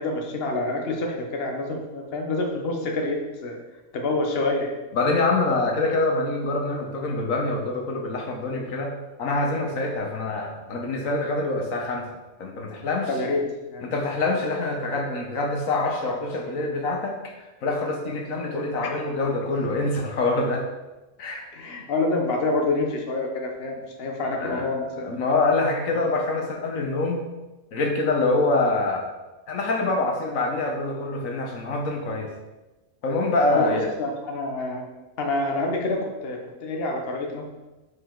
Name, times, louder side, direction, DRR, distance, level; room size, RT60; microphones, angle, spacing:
voice 1, 0.0-3.6 3.9-4.7 13.1-13.9 21.5-25.1 25.9-26.0 33.5-34.8 35.2-37.5, left 2 dB, 50° left, 1 dB, 1.2 m, -27 dB
voice 2, 4.9-12.1 12.4-13.1 13.8-17.4 17.6-20.7 21.2-21.5 24.3-24.7 25.0-27.2 27.7-29.1 29.5-32.3 33.0-33.9, left 2 dB, 85° left, 2 dB, 1.4 m, -25 dB
8.1 x 4.8 x 3.8 m, 1.1 s
omnidirectional pair, 1.4 m